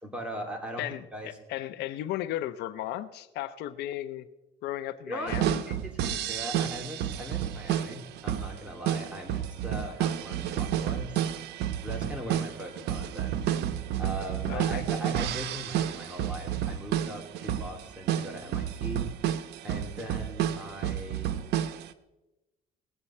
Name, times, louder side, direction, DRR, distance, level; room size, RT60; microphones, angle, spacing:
voice 1, 0.0-0.8 1.1-1.3 5.1-11.2 11.8-13.5 14.0-19.1 19.4-21.4, equal, 5° right, 1 dB, 2.6 m, -40 dB
voice 2, 0.8-4.2 4.6-5.6 14.5-14.8, left 13 dB, 80° left, 13 dB, 0.6 m, -35 dB
sound 1, 5.3-21.9, right 10 dB, 80° right, 0.7 m, -31 dB
19.5 x 8.2 x 4.3 m, 1.0 s
cardioid pair, 110°, 17 cm